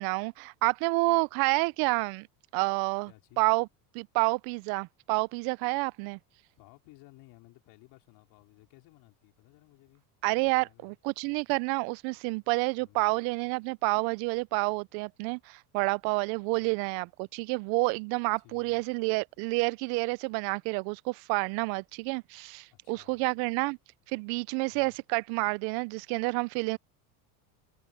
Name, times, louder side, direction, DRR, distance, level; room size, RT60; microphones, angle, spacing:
voice 1, 0.0-2.3 2.5-3.1 3.4-3.7 3.9-6.2 10.2-23.8 24.1-26.8, right 29 dB, 60° right, 0.5 m, -29 dB
voice 2, 3.1-3.4 6.6-10.0 10.4-11.0 12.8-13.1 16.5-16.8 18.4-18.8 22.7-23.3 24.7-25.0, left 21 dB, 60° left, 4.7 m, -57 dB
supercardioid pair, 115°, 43 cm